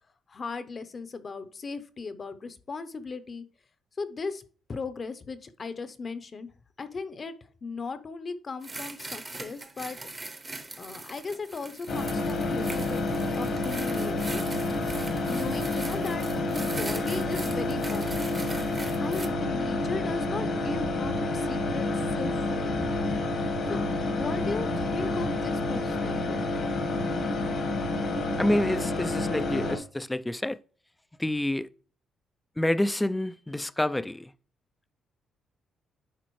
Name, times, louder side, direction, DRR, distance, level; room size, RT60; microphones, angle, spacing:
voice 1, 0.3-3.5 4.0-4.4 4.7-6.5 6.8-7.3 7.6-10.0 10.8-13.0 13.4-14.4 15.3-18.5 19.0-22.8 23.7-26.5, left 4 dB, 40° left, 0.8 m, -37 dB
sound 1, 8.6-19.3, right 2 dB, 20° right, 0.8 m, -41 dB
sound 2, 11.9-29.8, left 2 dB, 65° left, 1.5 m, -29 dB
voice 2, 28.4-30.6 31.2-31.7 32.6-34.3, left 1 dB, 10° left, 0.4 m, -28 dB
10.5 x 4.2 x 3.1 m
cardioid pair, 90°, 0 cm